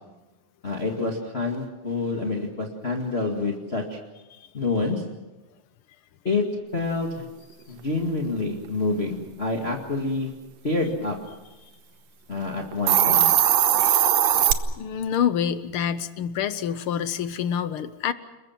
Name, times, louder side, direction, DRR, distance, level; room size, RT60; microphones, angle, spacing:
voice 1, 0.6-4.0 4.5-5.0 6.2-6.4 6.7-7.2 7.7-10.3 10.6-11.2 12.3-13.3, left 3 dB, 25° left, 1 dB, 2.0 m, -27 dB
Hiss, 12.7-14.5, right 10 dB, 70° right, 2.2 m, -19 dB
voice 2, 13.8-14.5 14.8-18.1, left 8 dB, 65° left, 13 dB, 1.4 m, -27 dB
29.5 x 21.5 x 6.0 m, 1.1 s
omnidirectional pair, 3.3 m